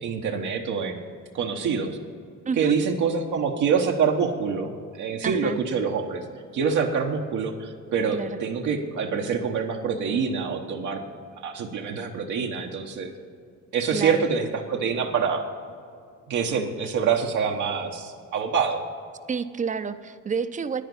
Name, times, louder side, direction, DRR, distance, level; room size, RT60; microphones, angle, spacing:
voice 1, 0.0-1.0 1.3-2.0 2.6-6.2 6.5-11.0 11.4-13.1 13.7-15.4 16.3-18.8, right 6 dB, 75° right, 1 dB, 1.1 m, -26 dB
voice 2, 2.5-2.8 5.2-5.6 8.1-8.4 13.9-14.3 19.3-20.8, right 6 dB, 25° right, 11 dB, 0.6 m, -29 dB
10.0 x 9.8 x 6.9 m, 2.2 s
cardioid pair, 90°, 30 cm